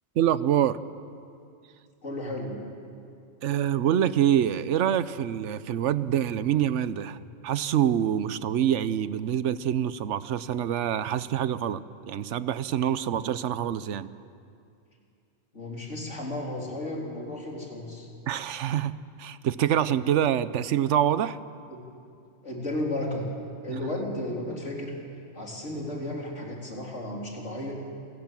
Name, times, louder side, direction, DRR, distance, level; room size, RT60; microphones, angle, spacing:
voice 1, 0.2-0.8 3.4-7.2 7.4-14.1 18.3-18.9 19.2-21.4, right 10 dB, 75° right, 15 dB, 1.1 m, -25 dB
voice 2, 2.0-2.6 15.5-18.1 21.7-21.8 22.4-23.3 23.6-25.0 25.3-27.9, left 1 dB, 75° left, -1 dB, 4.1 m, -33 dB
27.5 x 17.5 x 7.5 m, 2.5 s
omnidirectional pair, 1.2 m